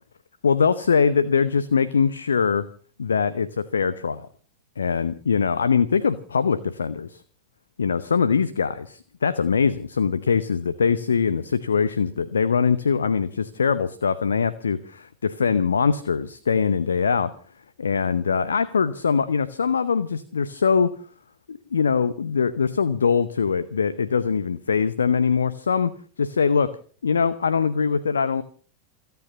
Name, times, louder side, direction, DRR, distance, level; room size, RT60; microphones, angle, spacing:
voice 1, 0.4-2.7 3.0-4.3 4.8-7.2 7.8-17.3 17.8-21.0 21.5-25.9 26.2-26.8 27.0-28.4, left 6 dB, 70° left, 15 dB, 0.8 m, -22 dB
28.0 x 9.5 x 5.4 m, 0.42 s
figure-of-eight pair, 90°, 0 cm